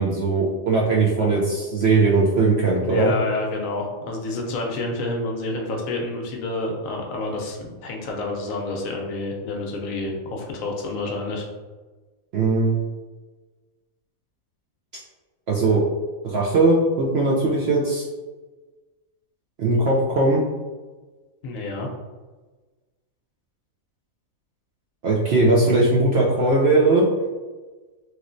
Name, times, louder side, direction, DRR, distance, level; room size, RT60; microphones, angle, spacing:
voice 1, 0.0-3.1 12.3-12.8 15.5-15.8 16.2-18.1 19.6-20.4 25.0-27.1, right 3 dB, 65° right, -5 dB, 0.6 m, -19 dB
voice 2, 2.8-11.4 21.4-21.9, left 2 dB, 70° left, 1 dB, 0.9 m, -29 dB
3.0 x 3.0 x 2.5 m, 1.3 s
omnidirectional pair, 1.5 m